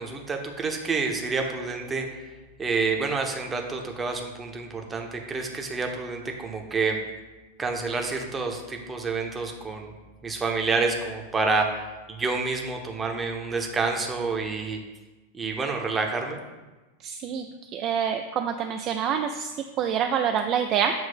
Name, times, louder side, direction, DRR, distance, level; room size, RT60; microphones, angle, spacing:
voice 1, 0.0-2.0 2.6-7.0 7.6-9.9 10.2-11.8 12.1-14.8 15.3-16.4, right 4 dB, 15° right, 2 dB, 0.8 m, -28 dB
voice 2, 17.0-17.5 17.7-20.9, right 8 dB, 35° right, 5 dB, 0.3 m, -26 dB
7.7 x 2.6 x 5.5 m, 1.2 s
figure-of-eight pair, 90°, 0 cm